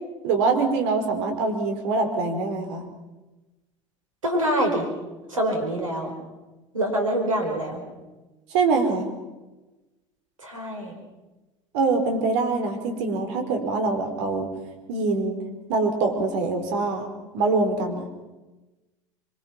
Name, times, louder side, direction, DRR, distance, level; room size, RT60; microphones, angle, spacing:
voice 1, 0.2-2.9 8.5-9.1 11.7-14.5 14.9-15.4 15.7-17.1 17.3-18.1, right 3 dB, 60° right, 5 dB, 4.7 m, -24 dB
voice 2, 4.2-4.9 5.3-6.1 6.7-7.8 10.4-10.9, right 1 dB, 85° right, 3 dB, 5.2 m, -25 dB
25.5 x 23.0 x 6.0 m, 1.1 s
figure-of-eight pair, 75°, 17 cm